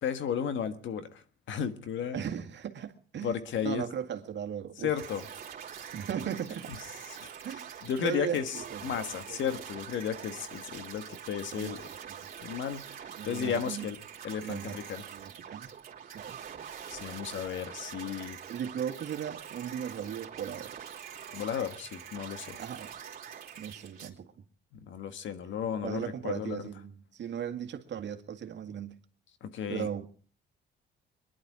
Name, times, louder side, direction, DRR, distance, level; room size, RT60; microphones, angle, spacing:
voice 1, 0.0-2.2 3.2-3.8 4.8-5.2 7.1-7.3 7.8-8.6 8.8-11.8 12.4-12.9 13.2-14.0 14.2-15.0 16.9-18.4 21.3-22.6 24.7-26.6 29.4-29.9, left 8 dB, 70° left, 10 dB, 1.5 m, -34 dB
voice 2, 2.1-3.4 3.6-4.9 5.9-6.8 7.4-8.9 9.3-9.6 11.5-11.8 13.1-13.9 14.4-14.8 15.0-15.7 16.1-16.4 18.5-20.7 22.6-22.9 23.6-24.3 25.8-28.9 29.7-30.0, right 8 dB, 65° right, 6 dB, 1.9 m, -37 dB
sound 1, 5.0-24.1, right 8 dB, 45° right, 2.9 m, -45 dB
23.0 x 11.0 x 4.8 m, 0.42 s
cardioid pair, 90°, 20 cm